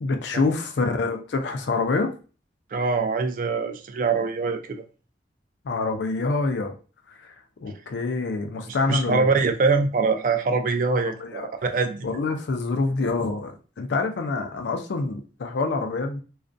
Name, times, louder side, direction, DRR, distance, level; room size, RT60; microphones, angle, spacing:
voice 1, 0.0-2.1 5.6-6.7 7.2-7.4 7.6-9.3 11.0-11.5 12.0-16.2, left 3 dB, 80° left, 5 dB, 0.4 m, -26 dB
voice 2, 2.7-4.8 8.7-12.2, right 4 dB, 50° right, 7 dB, 0.3 m, -24 dB
2.4 x 2.1 x 2.5 m, 0.36 s
head